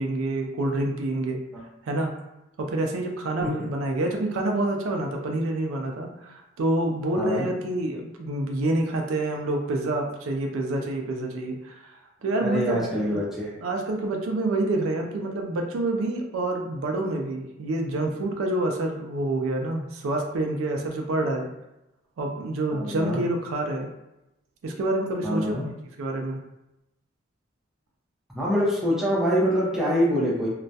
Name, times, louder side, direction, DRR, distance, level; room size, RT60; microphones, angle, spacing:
voice 1, 0.0-1.4 1.8-2.1 2.6-13.2 13.6-21.5 22.2-23.9 24.6-25.5 26.0-26.4, right 2 dB, 85° right, 2 dB, 0.4 m, -27 dB
voice 2, 7.2-7.5 12.4-13.5 22.7-23.2 25.2-25.6 28.3-30.5, equal, ahead, -8 dB, 0.6 m, -25 dB
2.2 x 2.1 x 2.6 m, 0.91 s
head